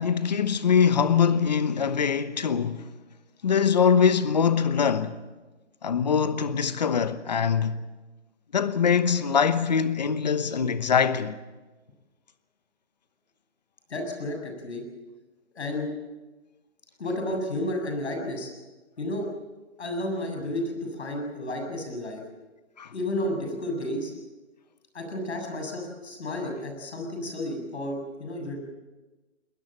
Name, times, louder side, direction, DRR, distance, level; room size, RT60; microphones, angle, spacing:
voice 1, 0.0-2.9 3.4-5.2 5.8-7.8 8.5-11.3 22.8-22.9, left 6 dB, 35° left, 1.0 m, -23 dB
voice 2, 13.9-14.9 15.6-15.9 17.0-18.5 19.0-19.3 19.8-22.2 22.9-24.1 24.9-28.6, left 1 dB, 65° left, 7.4 m, -32 dB
21.0 x 20.5 x 7.4 m
hypercardioid pair, 175°, 35 cm